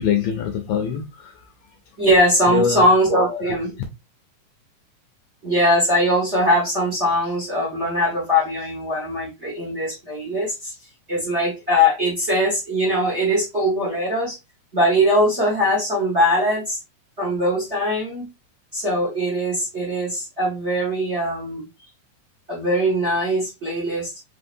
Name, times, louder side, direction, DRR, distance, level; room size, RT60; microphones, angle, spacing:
voice 1, 0.0-1.5 2.5-2.9 3.3-3.6, left 8 dB, 80° left, 1.4 m, -24 dB
voice 2, 2.0-3.7 5.4-10.7 11.1-14.4 14.7-16.8 17.2-18.3 18.7-21.7 22.5-24.1, equal, 40° right, 1.0 m, -21 dB
4.3 x 3.7 x 2.5 m
omnidirectional pair, 3.7 m